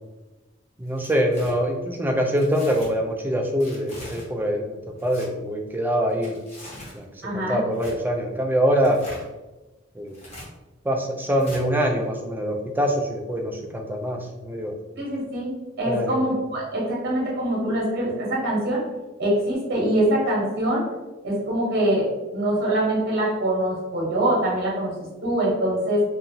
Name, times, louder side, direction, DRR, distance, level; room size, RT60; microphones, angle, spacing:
Tearing, 0.8-1.5 2.4-2.9 3.6-4.3 4.9-5.3 6.1-7.0 7.7-8.0 8.7-9.3 10.1-10.5 11.4-11.6, left 1 dB, 35° left, 0.9 m, -42 dB
voice 1, 0.8-6.4 6.9-9.0 10.0-10.1 10.8-14.7 15.9-16.2, equal, 10° right, 2 dB, 0.3 m, -24 dB
voice 2, 7.2-7.6 15.0-18.8 19.2-20.8 21.2-22.1 22.3-24.9 25.2-26.0, right 1 dB, 55° right, -4 dB, 0.8 m, -24 dB
2.7 x 2.5 x 2.6 m, 1.1 s
head